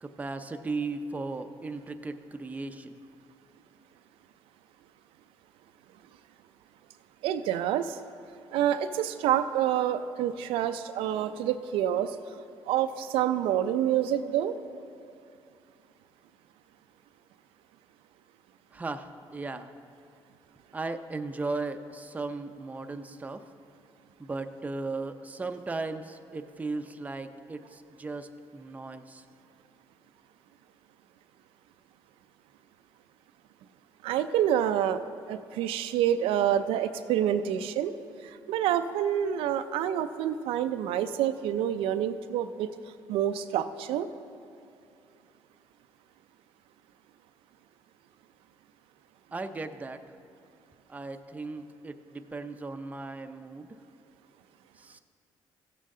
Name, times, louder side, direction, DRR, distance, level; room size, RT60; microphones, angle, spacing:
voice 1, 0.0-3.0 18.7-19.7 20.7-23.4 24.2-29.2 49.3-50.0 50.9-53.8 54.8-55.0, right 3 dB, 15° right, 7 dB, 0.5 m, -36 dB
voice 2, 7.2-8.0 8.5-12.2 12.7-14.5 34.0-35.0 35.3-37.9 38.2-42.7 43.1-44.1, right 10 dB, 90° right, 10 dB, 0.4 m, -27 dB
15.0 x 7.5 x 3.7 m, 2.6 s
cardioid pair, 105°, 9 cm